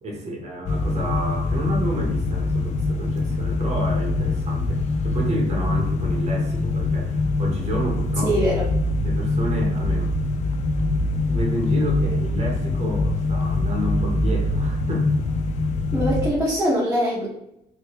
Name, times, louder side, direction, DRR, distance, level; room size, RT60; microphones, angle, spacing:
voice 1, 0.0-8.4 9.0-10.1 10.8-15.1, equal, 40° right, -1 dB, 1.3 m, -30 dB
sound 1, 0.7-16.3, left 2 dB, 45° left, 0.4 m, -23 dB
voice 2, 8.2-8.6 15.9-17.3, equal, 10° right, -8 dB, 1.2 m, -22 dB
3.2 x 3.1 x 3.0 m, 0.81 s
cardioid pair, 110°, 17 cm